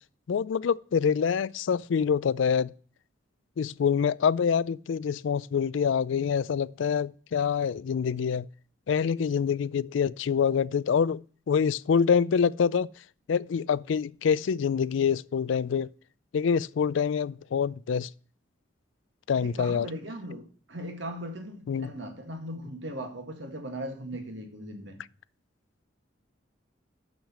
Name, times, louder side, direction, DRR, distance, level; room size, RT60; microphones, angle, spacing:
voice 1, 0.3-2.7 3.6-8.5 8.9-12.9 13.3-15.9 16.3-18.1 19.3-19.9 21.7-21.9, left 6 dB, 70° left, 0.3 m, -26 dB
voice 2, 19.4-25.0, right 1 dB, 70° right, 2.0 m, -38 dB
6.6 x 6.2 x 7.2 m
head